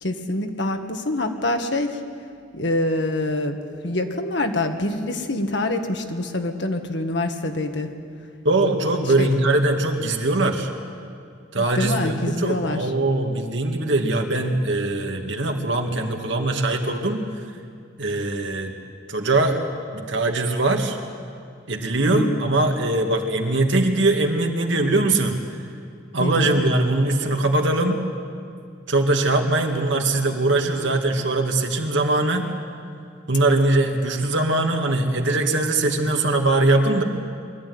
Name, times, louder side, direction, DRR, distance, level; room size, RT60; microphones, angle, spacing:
voice 1, 0.0-2.0 2.5-3.6 3.8-7.9 9.2-9.3 11.6-12.9 22.1-22.5 26.2-26.6, left 2 dB, 65° left, 5 dB, 1.6 m, -25 dB
voice 2, 8.4-10.7 11.5-17.2 18.0-18.8 19.1-19.6 19.9-21.0 21.7-25.4 26.1-28.0 28.9-32.5 33.3-37.0, right 2 dB, 75° right, 3 dB, 2.1 m, -21 dB
22.5 x 14.0 x 9.5 m, 2.3 s
head